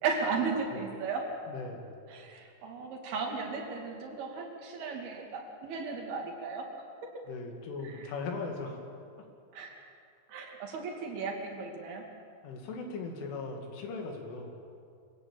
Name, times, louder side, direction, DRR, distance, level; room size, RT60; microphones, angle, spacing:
voice 1, 0.0-1.3 2.1-6.7 7.9-8.1 9.5-9.8 10.3-12.0, right 4 dB, 55° right, 1 dB, 4.0 m, -35 dB
voice 2, 1.5-1.9 7.3-8.8 12.4-14.6, left 3 dB, 75° left, 2 dB, 4.9 m, -39 dB
24.0 x 16.5 x 9.0 m, 2.4 s
omnidirectional pair, 5.7 m